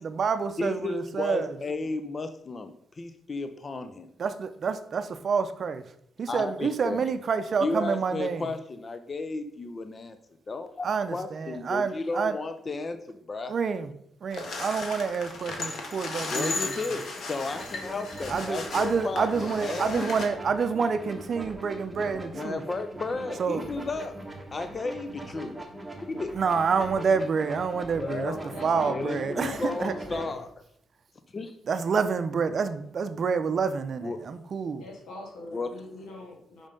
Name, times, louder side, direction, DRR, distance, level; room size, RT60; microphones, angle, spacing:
voice 1, 0.0-1.6 4.2-5.9 6.2-8.5 10.8-12.4 13.5-13.9 14.2-16.8 18.3-22.6 23.4-23.7 26.3-29.9 31.6-34.8, right 5 dB, 50° right, 0.6 m, -28 dB
voice 2, 0.6-4.1 6.3-7.0 7.6-10.2 10.5-13.5 16.3-20.1 22.3-24.2 24.5-25.6 26.1-26.3 28.0-28.4 28.9-30.5 31.3-31.6 34.0-34.2 35.5-35.7, left 3 dB, 30° left, 0.5 m, -33 dB
sound 1, 14.3-20.3, left 3 dB, 60° left, 1.4 m, -35 dB
sound 2, 17.5-30.3, right 1 dB, 5° right, 1.4 m, -41 dB
voice 3, 28.3-30.4 34.8-36.7, left 2 dB, 90° left, 2.0 m, -42 dB
5.4 x 5.3 x 5.2 m
cardioid pair, 120°, 0 cm